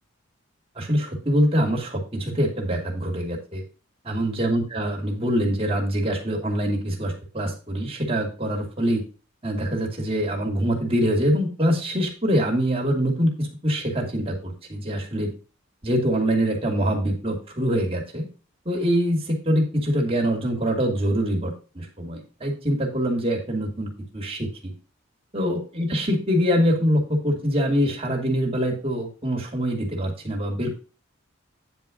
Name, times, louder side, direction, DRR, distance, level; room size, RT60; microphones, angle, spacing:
voice 1, 0.8-3.6 4.0-9.0 9.4-15.3 15.8-18.2 18.7-24.7 25.3-30.7, equal, 25° right, 0 dB, 2.5 m, -24 dB
9.8 x 4.7 x 5.2 m, 0.35 s
head